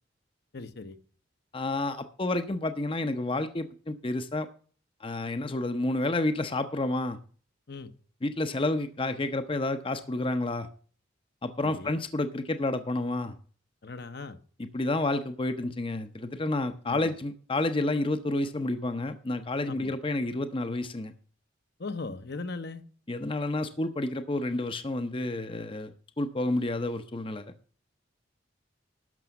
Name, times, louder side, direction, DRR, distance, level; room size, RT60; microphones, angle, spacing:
voice 1, 0.5-1.0 7.7-7.9 11.6-12.0 13.8-14.4 16.9-17.1 19.7-19.9 21.8-22.8, left 3 dB, 55° left, 10 dB, 0.9 m, -38 dB
voice 2, 1.5-4.5 5.0-7.2 8.2-10.7 11.4-13.3 14.7-21.1 23.1-25.9 26.2-27.5, left 2 dB, 25° left, 9 dB, 0.7 m, -30 dB
12.0 x 6.1 x 6.9 m, 0.43 s
head